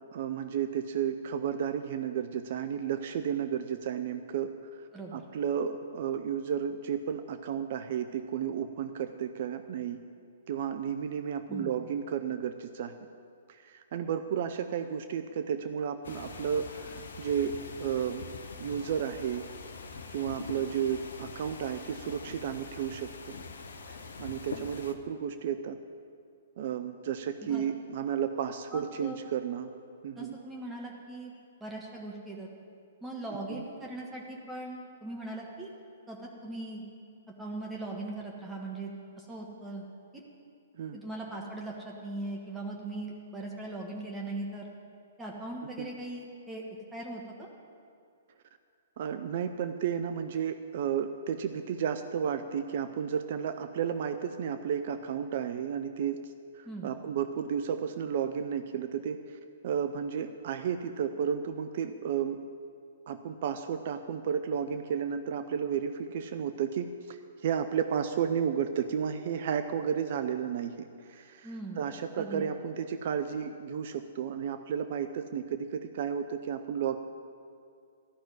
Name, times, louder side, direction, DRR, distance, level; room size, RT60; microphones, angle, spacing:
voice 1, 0.1-10.0 10.5-12.9 13.5-18.3 18.6-19.4 20.1-23.4 23.9-25.8 26.6-29.7 30.0-30.4 33.5-33.6 40.8-41.0 45.8-45.9 49.0-62.4 63.1-71.5 71.8-77.0, right 8 dB, 50° right, 9 dB, 0.5 m, -33 dB
sound 1, 16.0-24.9, left 4 dB, 65° left, 0.9 m, -44 dB
voice 2, 28.7-29.2 30.2-31.3 31.6-32.5 33.0-35.7 36.1-36.8 37.4-39.9 40.1-40.3 40.9-44.7 45.2-46.6 46.9-47.5 56.6-56.9 71.4-71.8 72.2-72.5, right 2 dB, 10° right, -2 dB, 1.4 m, -40 dB
12.5 x 6.0 x 9.4 m, 2.4 s
figure-of-eight pair, 115°, 0 cm